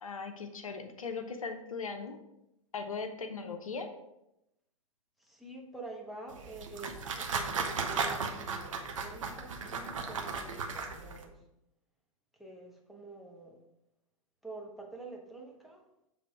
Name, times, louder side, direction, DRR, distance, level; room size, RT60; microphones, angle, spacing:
voice 1, 0.0-2.2 2.7-3.9, left 4 dB, 75° left, 6 dB, 0.8 m, -39 dB
voice 2, 5.2-11.4 12.3-13.6 14.4-15.8, right 2 dB, ahead, -1 dB, 1.0 m, -47 dB
sound 1, 6.3-11.2, right 5 dB, 65° right, 0.9 m, -36 dB
7.3 x 3.5 x 4.6 m, 0.86 s
figure-of-eight pair, 100°, 18 cm